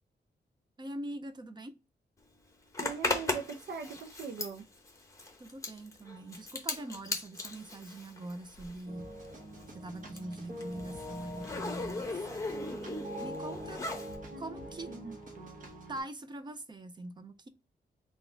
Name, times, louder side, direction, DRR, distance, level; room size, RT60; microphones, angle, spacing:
voice 1, 0.8-1.7 5.4-9.1 9.7-12.2 13.2-13.8 14.4-14.9 15.9-17.5, right 2 dB, 25° right, 0.5 m, -43 dB
Zipper (clothing), 2.7-8.9 9.2-14.2, left 2 dB, 15° left, 0.8 m, -38 dB
voice 2, 2.8-4.7 14.3-15.2, right 5 dB, 80° right, 0.5 m, -41 dB
sound 1, 8.9-16.0, equal, 45° right, 1.1 m, -44 dB
4.1 x 2.3 x 3.7 m
wide cardioid pair, 175°, 18 cm